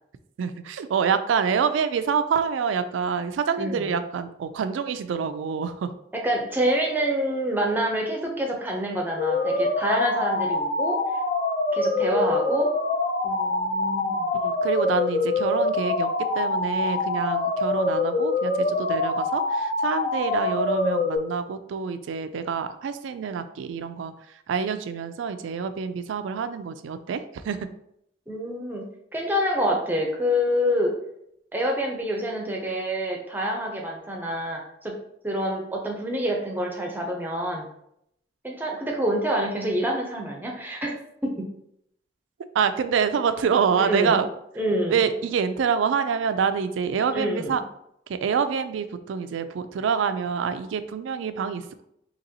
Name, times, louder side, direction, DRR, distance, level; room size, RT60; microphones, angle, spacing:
voice 1, 0.4-5.9 14.4-24.1 24.5-27.6 42.5-44.3 44.9-47.6 48.1-51.9, right 6 dB, 90° right, 11 dB, 0.3 m, -26 dB
voice 2, 3.6-3.9 6.1-11.0 11.7-12.7 13.2-14.3 28.3-28.8 29.1-30.9 31.5-34.9 35.2-37.7 38.4-40.9 41.2-41.4 43.8-44.2 44.6-45.0 47.1-47.6, equal, 10° right, 0 dB, 0.6 m, -27 dB
sound 1, 9.2-21.2, left 2 dB, 45° left, 0.6 m, -25 dB
4.0 x 2.9 x 2.7 m, 0.75 s
head